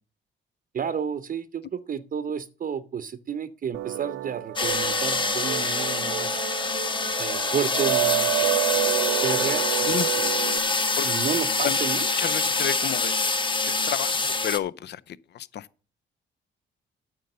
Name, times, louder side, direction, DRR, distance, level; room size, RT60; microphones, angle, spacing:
voice 1, 0.7-6.4 7.2-10.3 11.0-12.1, right 7 dB, 45° right, 0.7 m, -32 dB
sound 1, 3.7-10.6, right 18 dB, 80° right, 0.4 m, -29 dB
sound 2, 4.6-14.6, left 3 dB, 25° left, 1.2 m, -25 dB
voice 2, 12.2-13.2 13.7-15.0 15.5-15.6, left 10 dB, 60° left, 0.6 m, -30 dB
9.2 x 6.9 x 6.6 m
cardioid pair, 90°, 20 cm